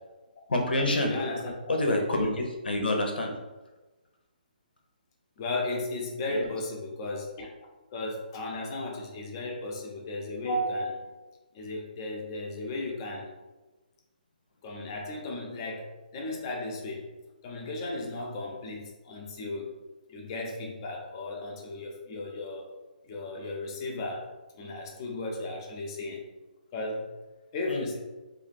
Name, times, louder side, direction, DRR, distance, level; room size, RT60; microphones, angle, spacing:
voice 1, 0.5-1.1 1.7-3.3 6.3-6.5 27.7-27.8, left 1 dB, 90° left, 2 dB, 0.8 m, -27 dB
voice 2, 1.0-1.7 2.2-2.3 5.4-7.5 7.9-11.2 11.5-13.3 14.6-17.1 17.4-19.7 20.1-22.7 23.1-24.3 24.6-26.2 26.7-27.1 27.5-28.0, left 2 dB, 25° left, 0 dB, 0.6 m, -35 dB
2.7 x 2.4 x 4.0 m, 1.2 s
hypercardioid pair, 160°, 5 cm